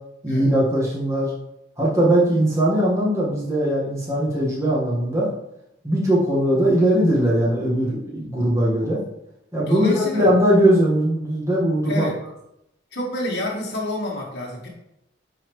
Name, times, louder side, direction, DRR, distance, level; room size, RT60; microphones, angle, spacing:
voice 1, 0.2-1.3 1.8-5.3 5.8-9.0 9.5-12.1, right 1 dB, 15° right, -6 dB, 1.5 m, -20 dB
voice 2, 9.7-10.3 11.9-12.2 12.9-14.7, left 1 dB, 60° left, -4 dB, 1.5 m, -28 dB
9.9 x 4.1 x 3.2 m, 0.80 s
head